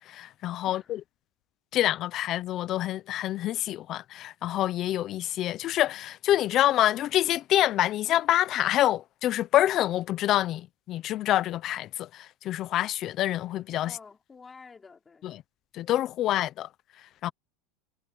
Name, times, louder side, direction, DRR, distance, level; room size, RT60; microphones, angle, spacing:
voice 1, 0.1-1.0 1.7-14.0 15.2-15.3 15.7-16.7 17.2-17.3, left 13 dB, 35° left, 0.6 m, -26 dB
voice 2, 13.8-15.4, left 5 dB, 15° left, 4.4 m, -50 dB
supercardioid pair, 165°, 0 cm